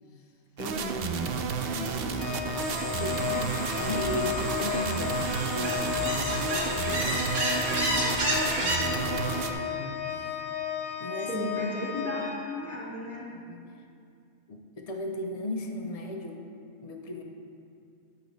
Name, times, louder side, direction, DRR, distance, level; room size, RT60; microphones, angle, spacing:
voice 1, 0.6-1.3 11.3-13.3, equal, 10° right, -7 dB, 1.1 m, -34 dB
sound 1, 0.6-9.5, right 5 dB, 65° right, 0.5 m, -32 dB
voice 2, 1.7-3.3 3.8-10.4 11.0-11.4 13.3-13.7 14.5-16.4 16.8-17.2, left 1 dB, 65° left, 3 dB, 0.3 m, -37 dB
Organ, 2.2-13.0, left 10 dB, 85° left, 1.1 m, -34 dB
sound 2, 2.6-8.8, right 1 dB, 80° right, 1.8 m, -32 dB
10.5 x 6.5 x 3.2 m, 2.4 s
omnidirectional pair, 1.5 m